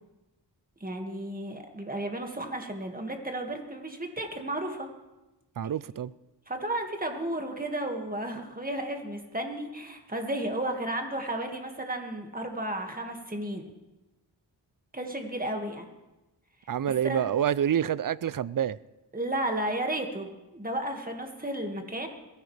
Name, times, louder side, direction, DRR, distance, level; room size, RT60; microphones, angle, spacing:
voice 1, 0.8-4.9 6.5-13.6 14.9-15.9 17.0-17.2 19.1-22.1, right 1 dB, 20° right, 2.0 m, -33 dB
voice 2, 5.6-6.1 16.7-18.8, right 9 dB, 50° right, 0.5 m, -27 dB
22.0 x 15.0 x 3.4 m
wide cardioid pair, 80°, 43 cm